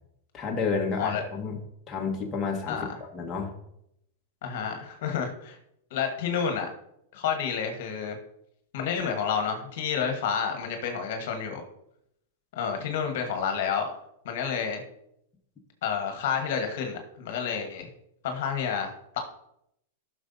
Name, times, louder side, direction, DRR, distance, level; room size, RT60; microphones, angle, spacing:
voice 1, 0.3-1.6 1.9-2.8 3.1-3.5, left 5 dB, 25° left, 0 dB, 1.3 m, -30 dB
voice 2, 2.7-3.0 4.4-5.6 5.9-6.7 7.1-8.2 8.7-11.6 12.5-13.9 14.2-14.8 15.8-17.9 18.2-19.2, left 7 dB, 65° left, 5 dB, 1.3 m, -30 dB
11.5 x 6.2 x 2.7 m, 0.77 s
hypercardioid pair, 120°, 0 cm